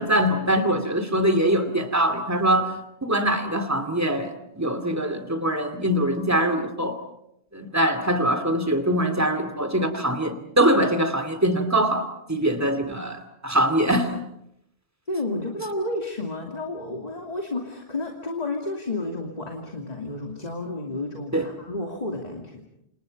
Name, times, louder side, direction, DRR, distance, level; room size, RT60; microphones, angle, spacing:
voice 1, 0.0-2.7 3.0-7.0 7.5-14.2 21.3-21.5, right 1 dB, 15° right, 7 dB, 2.5 m, -23 dB
voice 2, 15.1-22.6, left 2 dB, 40° left, 1 dB, 2.9 m, -31 dB
28.5 x 28.5 x 5.3 m, 0.78 s
omnidirectional pair, 1.1 m